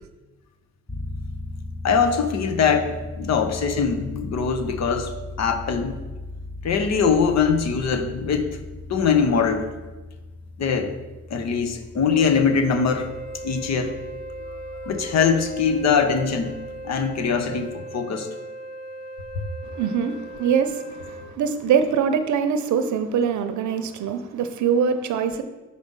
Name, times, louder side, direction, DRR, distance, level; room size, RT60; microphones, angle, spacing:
sound 1, 0.9-17.6, left 2 dB, 5° left, 0.5 m, -38 dB
voice 1, 1.8-5.1 5.4-6.0 6.6-8.6 8.9-9.7 10.6-11.0 11.3-13.1 13.4-13.9 14.5-14.6 14.8-16.5 16.8-18.3, left 6 dB, 60° left, 7 dB, 1.0 m, -22 dB
Wind instrument woodwind instrument, 12.1-21.3, right 1 dB, 25° left, 2.2 m, -37 dB
voice 2, 19.7-25.4, right 7 dB, 70° right, 9 dB, 0.7 m, -23 dB
6.6 x 5.1 x 5.4 m, 1.2 s
cardioid pair, 90°, 30 cm